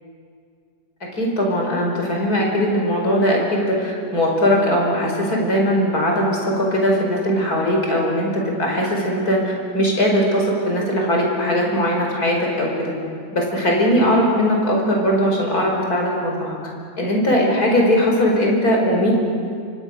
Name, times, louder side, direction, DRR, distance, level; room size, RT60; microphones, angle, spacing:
voice 1, 1.2-12.9 13.3-16.6 17.0-19.1, equal, 75° left, 0 dB, 5.3 m, -19 dB
28.5 x 26.0 x 6.5 m, 2.3 s
omnidirectional pair, 1.6 m